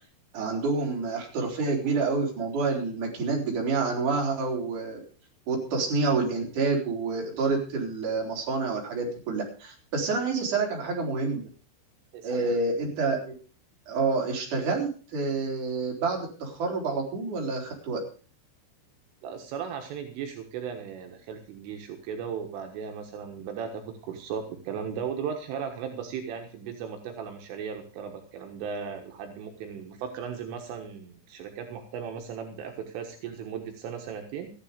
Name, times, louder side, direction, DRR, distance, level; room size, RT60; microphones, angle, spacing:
voice 1, 0.3-5.0 5.5-11.4 12.2-13.3 13.9-18.0, right 4 dB, 40° right, 0 dB, 4.7 m, -28 dB
voice 2, 12.1-12.5 19.2-34.5, right 7 dB, 80° right, 4 dB, 3.9 m, -36 dB
15.0 x 11.0 x 5.1 m, 0.38 s
omnidirectional pair, 5.8 m